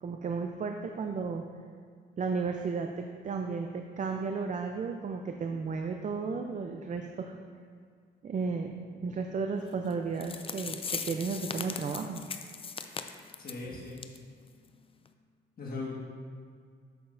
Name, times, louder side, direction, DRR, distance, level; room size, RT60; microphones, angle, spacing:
voice 1, 0.0-1.4 2.2-7.4 8.2-12.2 13.7-13.8, right 4 dB, 40° right, 4 dB, 0.5 m, -34 dB
sound 1, 9.9-10.0 10.2-13.6 14.0-14.2 14.5-14.6 15.1-15.2, left 5 dB, 30° left, 0.5 m, -38 dB
voice 2, 13.4-14.0 15.6-15.9, left 3 dB, 50° left, -3 dB, 1.6 m, -38 dB
9.0 x 7.5 x 2.6 m, 2.1 s
cardioid pair, 90°, 20 cm